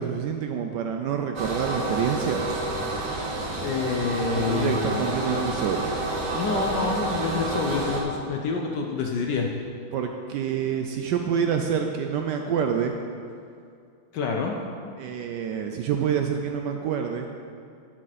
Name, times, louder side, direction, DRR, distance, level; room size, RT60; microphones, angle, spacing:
voice 1, 0.0-2.4 4.3-5.9 9.9-13.0 15.0-17.3, right 7 dB, 80° right, 4 dB, 0.9 m, -27 dB
sound 1, 1.4-8.0, right 2 dB, 50° right, 1.0 m, -29 dB
voice 2, 3.6-5.1 6.3-9.5 14.1-14.6, left 5 dB, 65° left, 1 dB, 1.1 m, -27 dB
12.0 x 6.3 x 4.1 m, 2.4 s
omnidirectional pair, 2.4 m